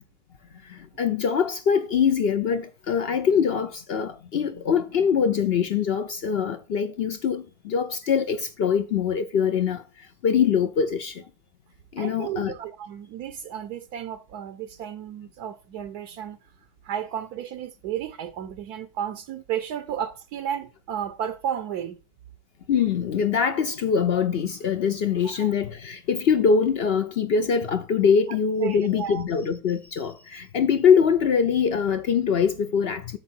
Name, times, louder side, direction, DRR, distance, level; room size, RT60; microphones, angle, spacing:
voice 1, 0.7-9.8 10.2-11.2 11.9-12.5 22.7-33.2, left 6 dB, 70° left, 0.5 m, -23 dB
voice 2, 12.0-16.4 16.8-22.0 25.2-25.5 28.3-29.2, right 9 dB, 75° right, 1.1 m, -33 dB
8.6 x 6.6 x 4.3 m
omnidirectional pair, 1.8 m